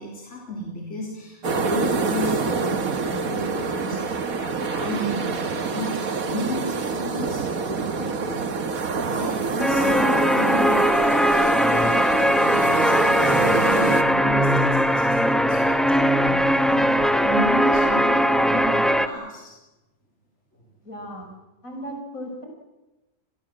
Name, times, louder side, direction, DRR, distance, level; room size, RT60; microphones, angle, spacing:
voice 1, 0.0-11.0 11.3-16.9 17.2-19.6, left 1 dB, 55° left, -1 dB, 4.0 m, -34 dB
sound 1, 1.4-14.0, right 4 dB, 85° right, 1.9 m, -26 dB
sound 2, 9.6-19.1, equal, ahead, 1.0 m, -20 dB
voice 2, 20.8-21.3 21.6-22.5, equal, 70° left, 2 dB, 6.3 m, -35 dB
27.5 x 21.5 x 7.6 m, 1.1 s
omnidirectional pair, 1.5 m